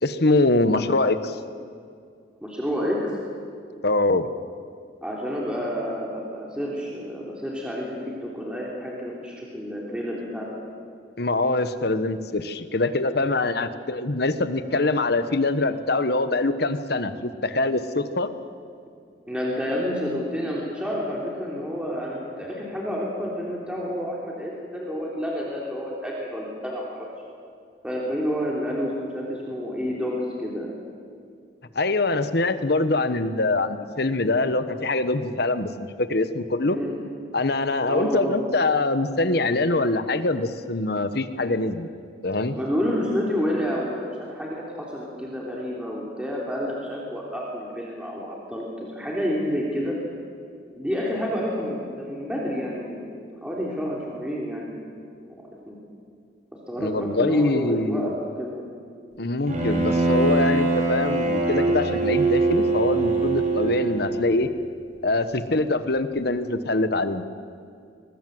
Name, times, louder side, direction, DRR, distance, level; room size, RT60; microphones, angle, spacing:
voice 1, 0.0-1.4 3.8-4.3 11.2-18.3 31.7-36.8 37.3-41.9 42.2-42.6 56.8-58.1 59.2-64.5 65.0-67.2, left 2 dB, 60° left, 11 dB, 1.2 m, -24 dB
voice 2, 2.4-3.2 5.0-10.5 19.3-27.1 27.8-30.7 36.6-37.0 37.8-38.5 42.5-50.0 50.7-54.7 55.3-55.8 56.7-58.7, equal, 5° right, -4 dB, 3.3 m, -29 dB
Bowed string instrument, 59.5-64.3, right 3 dB, 45° right, 5.1 m, -23 dB
23.5 x 20.0 x 7.9 m, 2.3 s
head